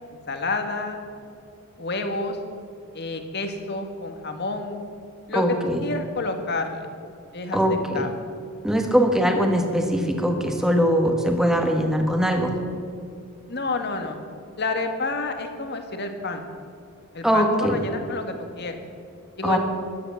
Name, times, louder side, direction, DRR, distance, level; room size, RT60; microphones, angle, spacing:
voice 1, 0.3-1.0 1.8-2.4 2.9-4.8 5.3-5.4 5.8-6.9 7.3-7.6 7.9-8.1 13.5-14.2 14.6-16.4 17.1-18.8 19.4-19.6, left 3 dB, 50° left, 5 dB, 1.7 m, -29 dB
voice 2, 5.3-5.9 7.5-8.1 8.6-12.5 17.2-17.8 19.4-19.6, equal, ahead, 3 dB, 1.5 m, -21 dB
14.5 x 11.5 x 7.2 m, 2.5 s
head